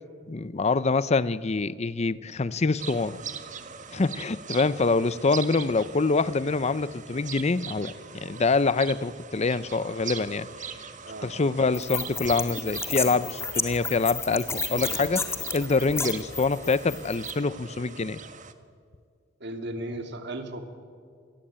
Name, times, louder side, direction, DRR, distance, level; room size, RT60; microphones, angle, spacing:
voice 1, 0.3-3.2 3.9-10.5 11.2-18.2, left 3 dB, 35° left, 17 dB, 0.6 m, -25 dB
sound 1, 2.8-18.5, right 7 dB, 40° right, 1.5 m, -41 dB
sound 2, 11.7-17.3, left 4 dB, 15° left, 1.9 m, -32 dB
voice 2, 19.4-20.6, right 1 dB, 65° right, 6 dB, 2.9 m, -35 dB
27.0 x 20.5 x 8.8 m, 2.2 s
head